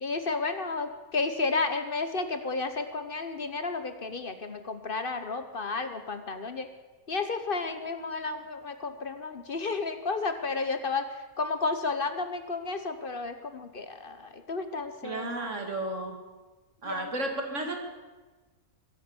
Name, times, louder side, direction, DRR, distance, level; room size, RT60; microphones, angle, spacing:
voice 1, 0.0-6.7 7.1-15.3 16.8-17.1, left 3 dB, 40° left, 9 dB, 1.1 m, -32 dB
voice 2, 15.0-16.2 16.8-17.8, right 2 dB, 55° right, 3 dB, 2.5 m, -33 dB
22.5 x 8.1 x 7.1 m, 1.2 s
omnidirectional pair, 1.5 m